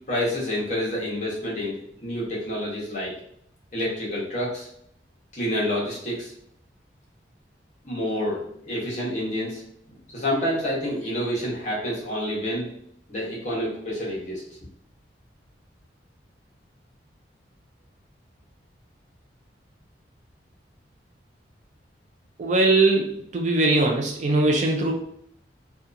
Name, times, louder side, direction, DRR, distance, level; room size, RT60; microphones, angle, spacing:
voice 1, 0.1-3.1 3.7-4.7 5.3-6.3 7.8-8.4 8.6-9.6 10.1-12.7 13.1-14.4, equal, 40° left, -5 dB, 0.9 m, -28 dB
voice 2, 22.4-23.1 23.3-24.9, right 2 dB, 40° right, 1 dB, 0.3 m, -20 dB
2.7 x 2.3 x 2.4 m, 0.70 s
head